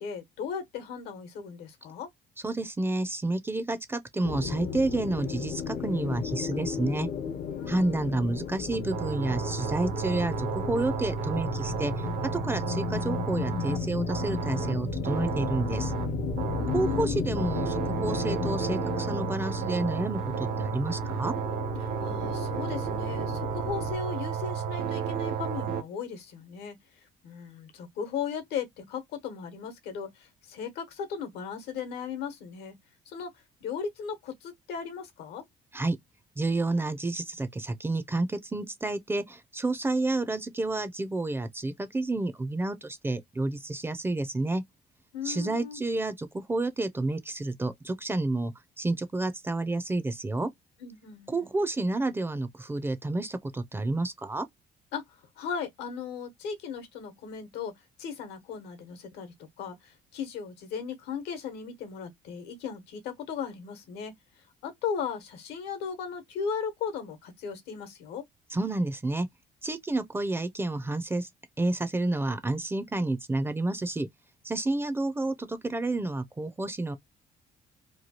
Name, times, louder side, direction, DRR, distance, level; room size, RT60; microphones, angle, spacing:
voice 1, 0.0-2.1 7.6-8.1 16.5-17.3 21.8-32.7 33.1-33.3 33.6-35.4 45.1-45.8 50.8-51.5 54.9-57.7 58.0-64.1 64.6-68.2, left 6 dB, 85° left, 1.0 m, -37 dB
voice 2, 2.4-7.1 7.7-12.1 12.3-15.9 16.7-21.3 35.7-36.0 36.4-44.6 45.2-50.5 51.3-54.5 68.5-69.3 69.6-71.3 71.6-74.1 74.4-77.0, right 2 dB, 15° right, 0.4 m, -30 dB
sound 1, 4.2-23.9, left 7 dB, 50° left, 0.5 m, -35 dB
sound 2, 8.7-25.8, right 8 dB, 70° right, 0.7 m, -33 dB
3.0 x 2.3 x 2.7 m
cardioid pair, 110°, 17 cm